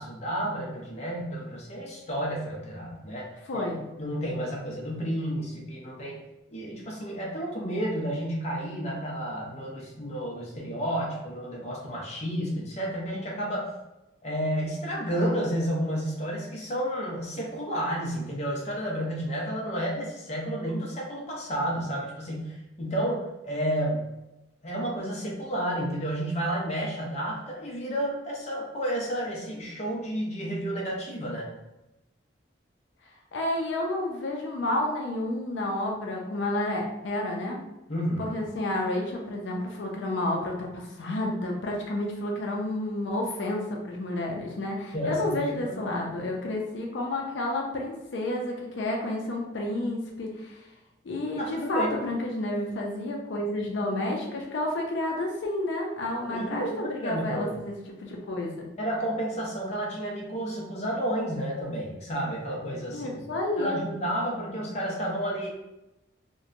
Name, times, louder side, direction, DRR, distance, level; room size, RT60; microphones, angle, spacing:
voice 1, 0.0-3.3 3.5-3.7 4.0-6.2 6.5-13.7 14.2-24.0 24.6-31.5 37.9-38.3 44.9-45.8 51.4-51.9 56.2-57.5 58.8-63.1 63.6-65.5, equal, 35° left, -3 dB, 0.6 m, -31 dB
voice 2, 3.5-3.8 33.3-37.6 38.2-50.6 51.0-58.7 62.9-63.8, left 1 dB, 80° left, 0 dB, 0.4 m, -30 dB
2.8 x 2.1 x 2.5 m, 0.95 s
head